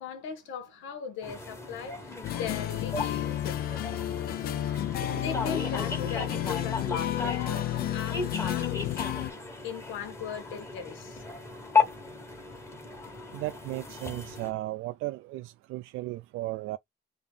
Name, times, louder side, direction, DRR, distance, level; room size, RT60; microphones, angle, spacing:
voice 1, 0.0-3.6 5.1-9.0 9.6-11.2, left 7 dB, 85° left, 1.3 m, -39 dB
sound 1, 1.2-14.5, left 4 dB, 15° left, 1.2 m, -35 dB
sound 2, 2.2-9.3, left 13 dB, 50° left, 0.5 m, -31 dB
sound 3, 5.0-9.2, right 10 dB, 50° right, 0.7 m, -47 dB
voice 2, 13.3-16.8, right 18 dB, 85° right, 0.4 m, -35 dB
3.5 x 2.9 x 3.6 m
cardioid pair, 170°, 20 cm